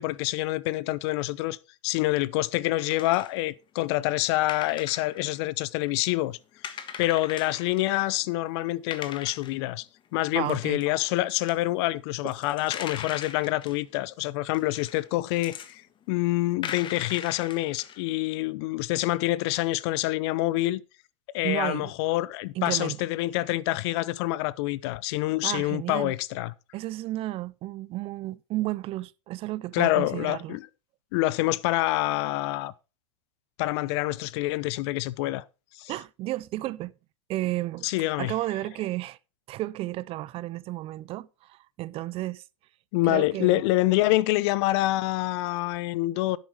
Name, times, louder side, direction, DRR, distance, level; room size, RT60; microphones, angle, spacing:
voice 1, 0.0-1.6 1.8-6.4 7.0-9.9 10.1-15.8 16.1-20.8 21.3-26.5 29.7-30.7 31.1-32.7 33.6-35.4 35.7-35.9 37.8-38.3 42.9-46.4, left 18 dB, 55° left, 0.7 m, -26 dB
sound 1, 2.8-3.4 4.2-4.3 4.5-5.9 6.2-6.3 6.6-7.9 8.3-8.4 8.9-9.5 10.5-10.8 11.3-12.0 12.2-13.8 14.5-15.7 16.0-16.1 16.6-18.1, left 8 dB, 30° left, 1.5 m, -40 dB
voice 2, 10.3-10.8 21.4-21.9 22.6-23.0 25.4-26.1 26.7-30.6 35.9-36.9 37.3-37.9 38.2-39.2 39.5-42.4 43.0-43.6, right 16 dB, 35° right, 0.5 m, -32 dB
10.0 x 8.3 x 4.6 m
hypercardioid pair, 110°, 16 cm